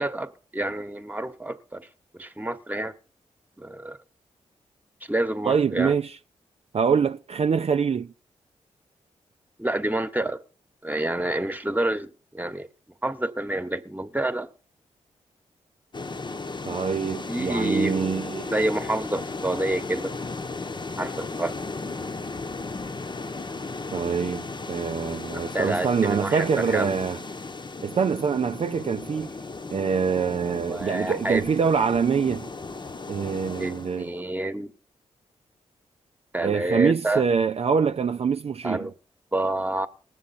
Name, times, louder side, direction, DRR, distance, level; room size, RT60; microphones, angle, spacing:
voice 1, 0.0-1.9 2.1-2.9 3.6-4.0 5.1-5.9 9.6-10.4 10.8-12.7 13.0-14.5 17.3-18.2 18.5-20.1 21.0-21.5 25.3-26.9 30.7-31.4 33.6-34.7 36.3-37.2 38.6-38.9 39.3-39.9, right 1 dB, 10° right, 1.2 m, -28 dB
voice 2, 5.4-6.2 6.7-8.1 16.7-18.5 23.9-27.2 27.8-29.4 29.7-32.5 33.1-34.1 36.4-38.9, right 6 dB, 50° right, 0.5 m, -25 dB
sound 1, 15.9-34.1, left 3 dB, 35° left, 1.0 m, -35 dB
19.5 x 7.3 x 4.2 m
supercardioid pair, 45°, 13 cm